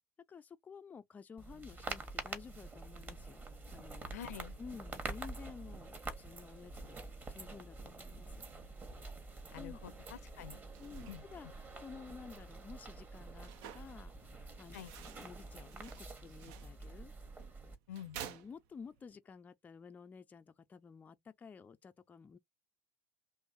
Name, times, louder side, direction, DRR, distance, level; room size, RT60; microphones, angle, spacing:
voice 1, 0.3-3.4 3.7-4.1 4.6-7.0 7.3-8.4 9.5-9.8 10.8-11.5 11.8-17.1 18.2-22.4, left 5 dB, 20° left, 0.5 m, -52 dB
sound 1, 1.4-17.8, right 3 dB, 20° right, 1.3 m, -47 dB
voice 2, 4.1-4.5 9.5-10.6 11.1-11.2 14.7-14.9 17.9-18.2, left 10 dB, 65° left, 0.6 m, -47 dB
sound 2, 10.7-19.1, right 10 dB, 50° right, 0.7 m, -54 dB
3.4 x 3.1 x 2.7 m
figure-of-eight pair, 80°, 9 cm